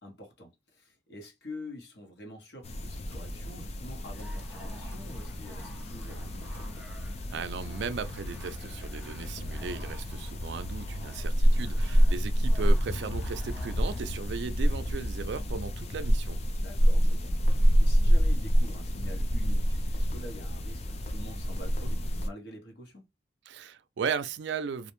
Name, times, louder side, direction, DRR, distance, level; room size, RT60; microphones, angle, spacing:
voice 1, 0.0-6.8 11.0-11.2 16.6-23.0, left 1 dB, 65° left, 1.0 m, -46 dB
sound 1, 2.6-22.3, equal, 35° left, 0.4 m, -28 dB
sound 2, 3.1-3.4 4.0-4.5 4.9-5.9 6.4-6.8 7.5-7.9 8.3-8.6 8.9-9.3 10.5-10.9 11.6-11.9, equal, 15° left, 1.0 m, -51 dB
sound 3, 4.0-14.2, equal, 5° right, 0.7 m, -53 dB
voice 2, 7.3-16.4 23.5-24.9, right 5 dB, 75° right, 0.4 m, -36 dB
2.5 x 2.1 x 2.9 m
head